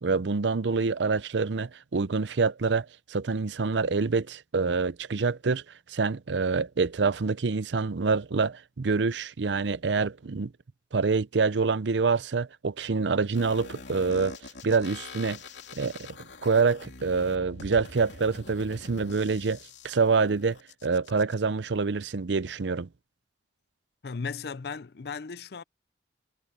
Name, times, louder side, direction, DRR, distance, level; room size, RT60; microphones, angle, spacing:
voice 1, 0.0-5.6 5.9-10.5 10.9-14.4 14.6-15.4 15.7-16.1 16.4-19.6 19.8-22.9, right 4 dB, 75° right, 0.6 m, -26 dB
sound 1, 13.3-21.3, left 3 dB, 80° left, 3.0 m, -45 dB
voice 2, 24.0-25.6, left 5 dB, 60° left, 0.5 m, -36 dB
head